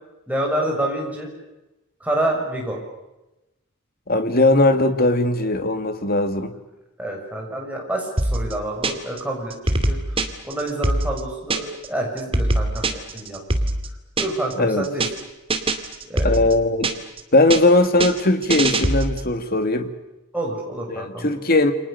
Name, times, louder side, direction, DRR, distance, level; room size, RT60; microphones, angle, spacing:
voice 1, 0.3-1.3 2.0-2.8 7.0-13.4 14.2-15.0 16.1-16.5 20.3-21.3, right 1 dB, 5° right, -1 dB, 7.5 m, -28 dB
voice 2, 4.1-6.5 14.6-14.8 16.2-16.9 17.3-19.9 20.9-21.7, left 2 dB, 45° left, 7 dB, 2.4 m, -19 dB
sound 1, 8.2-9.2 9.5-11.9 12.2-14.5 14.8-15.2 15.5-17.2 17.5-19.3, right 2 dB, 25° right, 2.4 m, -23 dB
29.0 x 27.0 x 6.9 m, 0.98 s
head